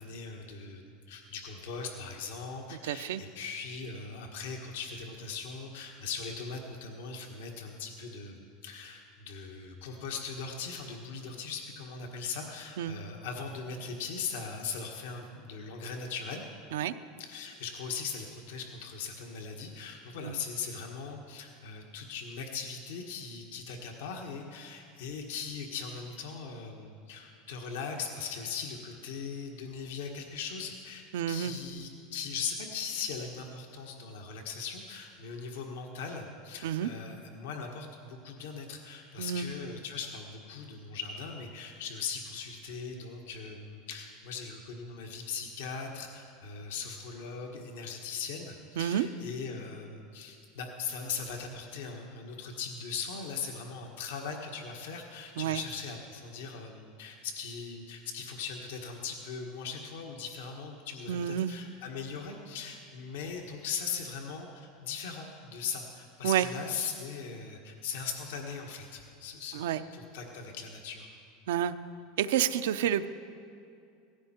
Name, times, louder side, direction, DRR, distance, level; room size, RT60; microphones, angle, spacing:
voice 1, 0.0-16.4 17.2-69.6 69.9-71.1, left 5 dB, 85° left, 2 dB, 1.5 m, -39 dB
voice 2, 2.8-3.2 12.8-13.0 16.7-16.9 20.2-20.4 31.1-31.6 36.6-36.9 39.2-39.5 48.8-49.1 55.4-55.6 61.1-61.5 66.2-66.5 69.5-69.8 71.5-71.7 72.2-73.1, right 10 dB, 85° right, 11 dB, 0.6 m, -29 dB
17.0 x 15.0 x 4.4 m, 2.4 s
supercardioid pair, 140°, 0 cm